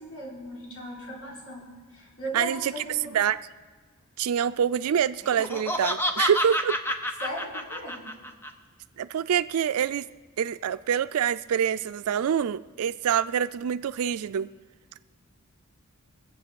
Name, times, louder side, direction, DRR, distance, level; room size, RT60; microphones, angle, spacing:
voice 1, 0.0-3.2 7.2-8.0, equal, 80° left, -4 dB, 4.4 m, -38 dB
voice 2, 2.3-2.8 3.1-3.4 4.2-6.8 9.0-10.1 10.4-14.5, right 8 dB, 90° right, 14 dB, 0.4 m, -26 dB
Laughter, 5.2-8.5, equal, 10° left, 0.7 m, -29 dB
20.0 x 8.0 x 6.9 m, 1.4 s
head